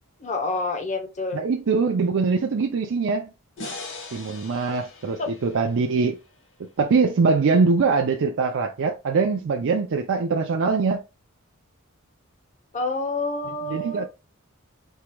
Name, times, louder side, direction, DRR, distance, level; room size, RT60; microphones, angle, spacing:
voice 1, 0.2-1.4 5.2-5.3 12.7-14.1, left 2 dB, 35° left, 0.8 m, -28 dB
voice 2, 1.3-3.3 4.1-6.2 6.8-11.0 13.7-14.1, right 4 dB, 60° right, 0.4 m, -22 dB
sound 1, 3.6-6.8, left 2 dB, 60° left, 1.3 m, -40 dB
4.6 x 2.9 x 2.2 m
head